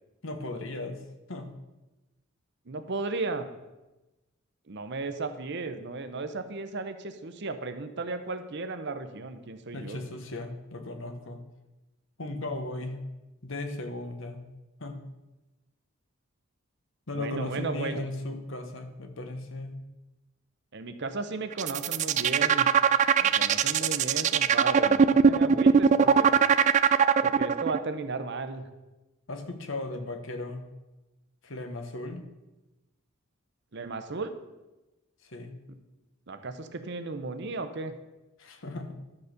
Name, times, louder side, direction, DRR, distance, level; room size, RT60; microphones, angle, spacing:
voice 1, 0.2-1.0 1.3-1.5 9.7-11.4 12.2-13.0 13.4-14.5 14.8-15.0 17.1-19.8 29.3-30.7 31.4-32.2 35.2-35.6 38.4-39.0, left 2 dB, 60° left, 6 dB, 1.1 m, -36 dB
voice 2, 2.7-3.5 4.7-10.0 17.1-18.0 20.7-22.7 23.2-26.3 27.2-28.7 33.7-34.3 36.3-37.9, right 3 dB, 55° right, 9 dB, 0.8 m, -35 dB
sound 1, 21.5-27.8, right 7 dB, 35° right, 0.3 m, -20 dB
12.0 x 4.2 x 6.6 m, 1.0 s
head